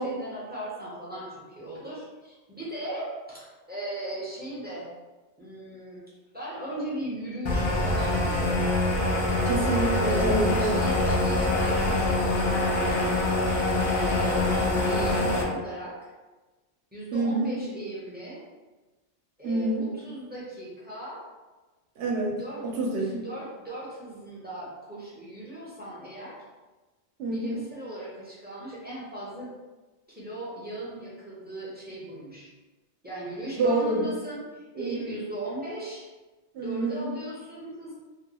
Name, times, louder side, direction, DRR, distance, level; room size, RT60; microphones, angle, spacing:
voice 1, 0.0-4.9 5.4-6.0 6.3-8.7 9.5-10.3 10.6-13.5 13.8-14.5 14.8-16.1 16.9-18.4 19.4-21.2 22.4-22.6 23.2-26.4 27.2-29.5 30.1-32.5 33.0-36.1 36.6-37.9, right 1 dB, 15° right, -8 dB, 0.4 m, -38 dB
sound 1, 7.5-15.4, left 1 dB, 60° left, 0.4 m, -24 dB
voice 2, 9.4-10.8 17.1-17.6 19.4-19.9 22.0-22.4 22.6-23.3 27.2-27.6 33.6-34.1 34.8-35.0 36.5-37.1, right 2 dB, 70° right, -2 dB, 0.8 m, -27 dB
2.4 x 2.2 x 2.8 m, 1.2 s
omnidirectional pair, 1.2 m